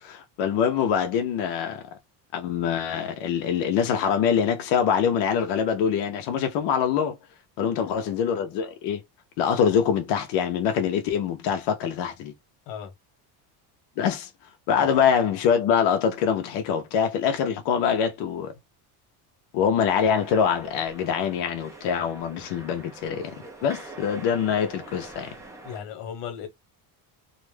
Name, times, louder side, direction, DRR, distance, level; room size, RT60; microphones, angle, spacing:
voice 1, 0.0-1.8 2.3-7.2 7.6-9.0 9.4-12.3 14.0-14.3 14.7-18.5 19.5-23.3 23.6-25.3, left 7 dB, 65° left, 0.7 m, -24 dB
voice 2, 7.6-8.0 12.7-12.9 14.7-14.9 25.6-26.5, left 8 dB, 85° left, 1.1 m, -36 dB
sound 1, 19.8-25.8, right 2 dB, 10° right, 0.3 m, -44 dB
2.4 x 2.1 x 3.1 m
cardioid pair, 140°, 45 cm